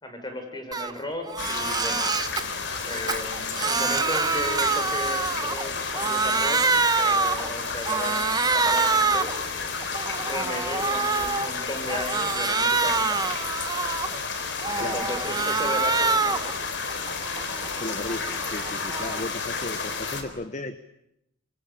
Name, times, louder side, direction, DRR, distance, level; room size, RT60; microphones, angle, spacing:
voice 1, 0.0-2.1 2.9-9.4 10.2-13.3 14.8-16.6, left 1 dB, 25° left, 5 dB, 6.1 m, -35 dB
Crying sobbing, 0.7-0.9 1.3-2.4 2.9-5.7 5.9-7.5 7.9-9.4 9.8-11.5 11.9-14.2 14.6-16.5 16.9-19.3, right 4 dB, 20° right, 1.2 m, -26 dB
sound 1, 1.4-20.2, left 4 dB, 65° left, 3.8 m, -32 dB
voice 2, 17.8-20.8, left 2 dB, 40° left, 12 dB, 1.1 m, -35 dB
26.5 x 26.0 x 8.4 m, 0.82 s
head